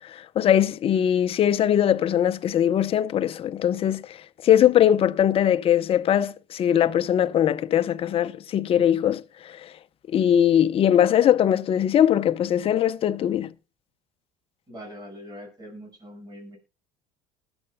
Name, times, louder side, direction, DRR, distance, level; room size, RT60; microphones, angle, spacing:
voice 1, 0.1-4.2 4.4-9.2 9.6-9.7 10.1-13.5, left 10 dB, 40° left, 0.7 m, -21 dB
voice 2, 14.7-16.6, equal, 30° right, 6.0 m, -42 dB
20.0 x 7.9 x 2.3 m
supercardioid pair, 110°, 15 cm